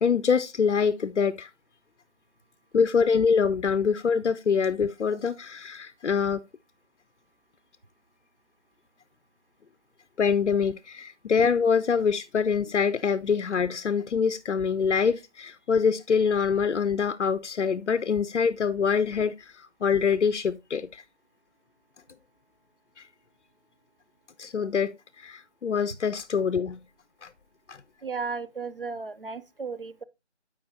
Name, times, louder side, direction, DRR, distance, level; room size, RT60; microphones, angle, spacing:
voice 1, 0.0-1.5 2.7-6.4 10.2-21.0 23.0-23.1 24.4-26.8 27.2-27.3 27.7-27.8, left 6 dB, 80° left, 0.5 m, -25 dB
voice 2, 28.0-30.0, right 4 dB, 50° right, 0.5 m, -34 dB
12.5 x 5.1 x 2.6 m
figure-of-eight pair, 165°, 35 cm